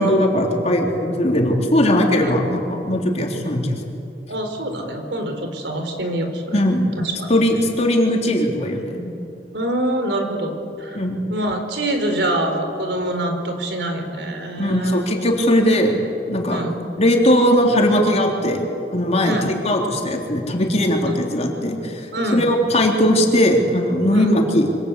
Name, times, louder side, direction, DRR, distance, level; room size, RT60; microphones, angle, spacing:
voice 1, 0.0-3.8 6.5-6.9 7.3-9.1 10.9-11.3 14.6-16.0 16.3-16.6 17.0-18.7 18.9-22.1 22.3-24.7, equal, 40° left, 1 dB, 3.5 m, -19 dB
voice 2, 4.3-6.6 6.9-7.3 9.5-11.0 11.3-15.1 16.5-16.8 19.2-19.5 22.1-22.5 24.1-24.3, right 1 dB, 75° right, 5 dB, 4.2 m, -25 dB
27.0 x 25.5 x 8.3 m, 2.8 s
head